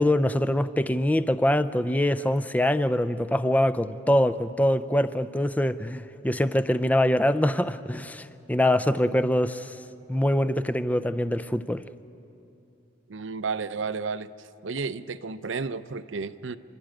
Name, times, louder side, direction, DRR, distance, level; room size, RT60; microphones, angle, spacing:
voice 1, 0.0-9.8 10.1-11.8, left 1 dB, 10° left, 13 dB, 0.4 m, -24 dB
voice 2, 13.1-14.3 14.6-16.6, right 4 dB, 70° right, 13 dB, 0.6 m, -32 dB
29.5 x 12.5 x 9.1 m, 2.7 s
head